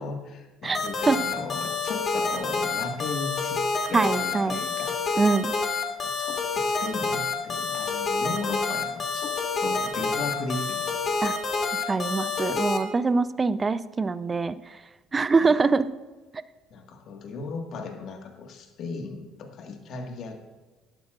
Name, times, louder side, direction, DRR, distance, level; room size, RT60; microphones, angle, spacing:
voice 1, 0.0-5.0 5.9-11.0 15.4-15.6 16.7-20.4, left 4 dB, 60° left, 4 dB, 1.7 m, -36 dB
sound 1, 0.7-12.8, left 4 dB, 40° left, 1.9 m, -28 dB
voice 2, 3.9-4.6 5.2-5.5 11.2-11.3 11.9-14.6 15.1-15.9, right 4 dB, 25° right, 15 dB, 0.5 m, -23 dB
12.0 x 11.5 x 2.5 m, 1.2 s
supercardioid pair, 85°, 0 cm